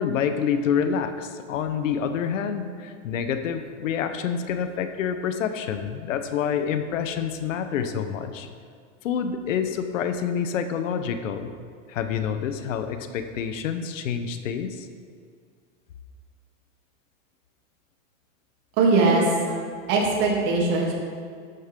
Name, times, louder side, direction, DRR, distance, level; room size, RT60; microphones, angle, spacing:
voice 1, 0.0-8.5 9.0-11.5 11.9-14.9, left 7 dB, 80° left, 8 dB, 1.1 m, -27 dB
voice 2, 18.8-19.6 19.9-20.9, right 3 dB, 50° right, -3 dB, 3.0 m, -21 dB
12.5 x 9.5 x 3.8 m, 2.1 s
supercardioid pair, 145°, 38 cm